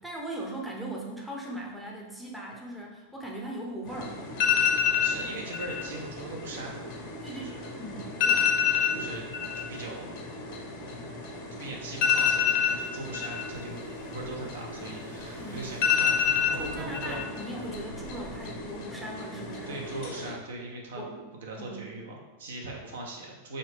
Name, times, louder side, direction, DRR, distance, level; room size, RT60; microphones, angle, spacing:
voice 1, 0.0-4.2 7.2-8.5 15.4-15.7 16.5-19.8 21.0-21.3 21.6-21.8, right 1 dB, 5° right, -2 dB, 0.6 m, -39 dB
sound 1, 3.9-20.3, left 7 dB, 45° left, 0.7 m, -30 dB
voice 2, 4.8-6.8 7.3-7.7 8.9-9.3 9.5-10.9 11.5-17.2 19.7-21.1 21.4-23.6, right 2 dB, 60° right, -1 dB, 0.6 m, -40 dB
Car / Engine, 11.9-18.6, equal, 80° right, 1.4 m, -48 dB
3.8 x 2.6 x 3.4 m, 1.2 s
figure-of-eight pair, 90°, 0 cm